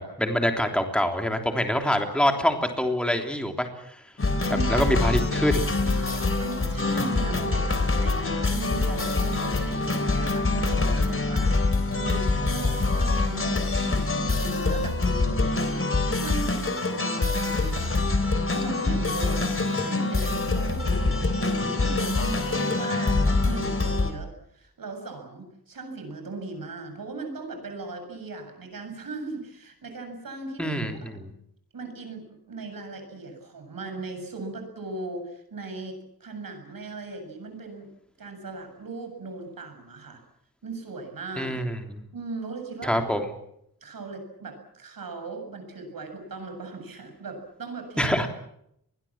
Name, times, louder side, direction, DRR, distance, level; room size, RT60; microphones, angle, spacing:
voice 1, 0.2-4.0 4.7-5.7 30.6-31.3 41.4-42.0 42.8-43.3 48.0-48.3, equal, 5° left, 4 dB, 3.4 m, -25 dB
sound 1, 4.2-24.1, left 3 dB, 35° left, 3.5 m, -25 dB
voice 2, 4.5-4.9 5.8-6.0 6.4-11.6 11.9-31.1 31.7-37.9 38.2-40.2 40.6-41.6 42.1-43.0 43.8-48.2, right 3 dB, 65° right, 6 dB, 7.4 m, -38 dB
26.5 x 21.5 x 7.4 m, 0.74 s
wide cardioid pair, 135°, 37 cm